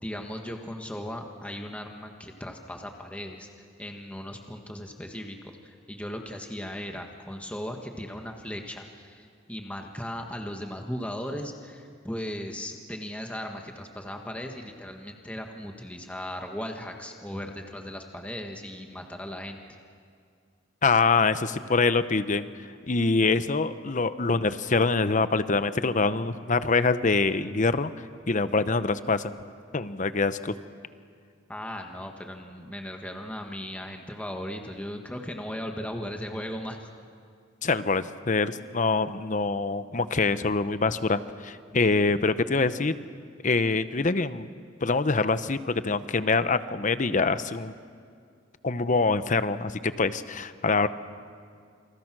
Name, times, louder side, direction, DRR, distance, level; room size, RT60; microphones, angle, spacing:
voice 1, 0.0-5.4 5.6-19.6 31.5-36.9, equal, 5° left, 3 dB, 1.6 m, -37 dB
voice 2, 20.8-22.4 22.9-27.9 28.3-29.3 29.7-30.5 37.6-42.9 43.4-44.5 44.8-47.7 48.6-50.9, left 3 dB, 40° left, 12 dB, 0.9 m, -25 dB
29.0 x 27.0 x 6.2 m, 2.2 s
head